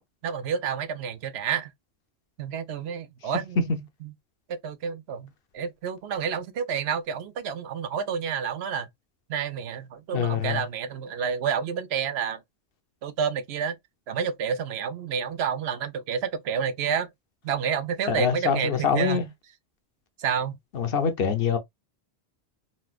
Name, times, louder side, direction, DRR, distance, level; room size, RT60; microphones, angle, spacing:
voice 1, 0.2-1.7 2.4-4.1 4.5-8.9 9.3-12.4 13.0-13.8 14.1-17.1 17.4-19.2 20.2-20.6, right 7 dB, 75° right, 0.8 m, -29 dB
voice 2, 10.1-10.6 18.1-19.2 20.7-21.6, left 6 dB, 60° left, 0.8 m, -24 dB
4.2 x 2.2 x 2.3 m
omnidirectional pair, 1.1 m